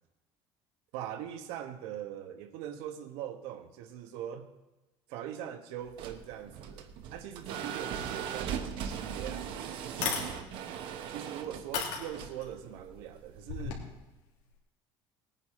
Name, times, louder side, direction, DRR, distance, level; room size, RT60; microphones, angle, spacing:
voice 1, 0.9-4.5 5.1-10.5 11.1-13.8, right 10 dB, 85° right, 7 dB, 1.4 m, -42 dB
sound 1, 5.8-13.7, right 8 dB, 55° right, 1.1 m, -39 dB
sound 2, 8.7-8.8 9.3-9.4 9.9-10.3 11.0-11.1 11.7-12.5 13.4-13.8, left 6 dB, 90° left, 3.0 m, -33 dB
19.0 x 9.8 x 4.3 m, 1.0 s
cardioid pair, 170°, 10 cm